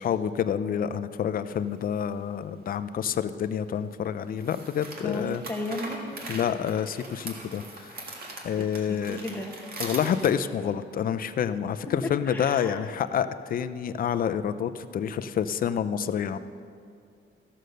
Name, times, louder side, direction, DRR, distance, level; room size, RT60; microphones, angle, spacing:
voice 1, 0.0-5.4 6.3-8.0 8.4-9.2 9.8-16.4, left 8 dB, 45° left, 12 dB, 0.4 m, -28 dB
sound 1, 1.6-1.7 4.3-10.3, right 2 dB, 50° right, 1.8 m, -41 dB
voice 2, 5.0-6.0 8.9-9.0 9.2-9.5 12.3-12.8, left 2 dB, 10° left, 0 dB, 1.1 m, -33 dB
14.5 x 6.5 x 6.5 m, 2.4 s
cardioid pair, 160°, 20 cm